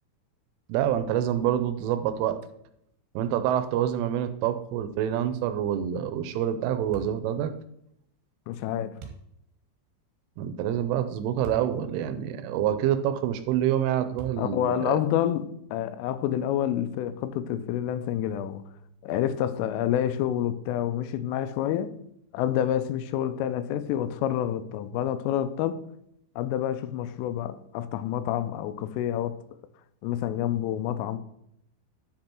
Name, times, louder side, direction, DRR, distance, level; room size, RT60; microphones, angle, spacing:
voice 1, 0.7-2.4 3.2-7.5 10.4-15.0, right 10 dB, 85° right, 3.1 m, -27 dB
sound 1, 6.9-7.3 9.0-9.3 11.4-11.7 12.3-12.4 14.2-14.7, right 6 dB, 70° right, 2.8 m, -42 dB
voice 2, 8.5-8.9 14.4-18.6 19.0-21.9 22.3-25.8 26.4-29.4 30.0-31.2, left 11 dB, 85° left, 3.2 m, -28 dB
9.9 x 5.4 x 4.4 m
omnidirectional pair, 5.6 m